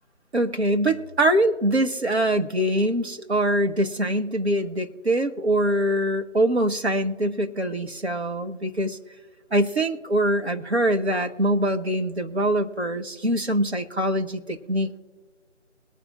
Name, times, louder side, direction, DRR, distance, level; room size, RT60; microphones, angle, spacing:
voice 1, 0.3-9.0 9.5-15.0, right 1 dB, 60° right, 5 dB, 1.5 m, -23 dB
21.5 x 9.8 x 2.5 m, 1.3 s
figure-of-eight pair, 160°, 36 cm